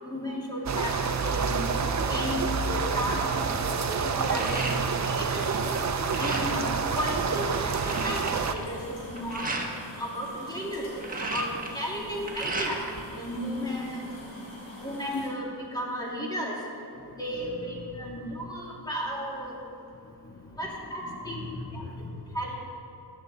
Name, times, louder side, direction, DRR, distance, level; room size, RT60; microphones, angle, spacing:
voice 1, 0.0-1.6 2.1-2.4 2.6-4.7 5.0-5.8 6.2-9.4 10.0-11.5 11.7-12.8 13.2-14.0 14.8-16.5 17.2-19.6 20.6-21.4 21.7-21.8 22.3-22.6, equal, 10° left, -3 dB, 2.4 m, -34 dB
sound 1, 0.6-8.6, right 5 dB, 40° right, 0.7 m, -28 dB
sound 2, 4.2-5.2 5.5-6.7 7.2-7.3 7.5-9.7 10.7-13.0 13.3-14.2, right 2 dB, 20° right, 1.3 m, -35 dB
sound 3, 7.3-15.3, equal, 85° left, 3.6 m, -45 dB
voice 2, 17.0-17.5 18.0-18.3 20.0-20.6 21.1-22.4, left 3 dB, 30° left, 7 dB, 0.7 m, -42 dB
15.5 x 11.0 x 4.0 m, 2.6 s
wide cardioid pair, 135°, 43 cm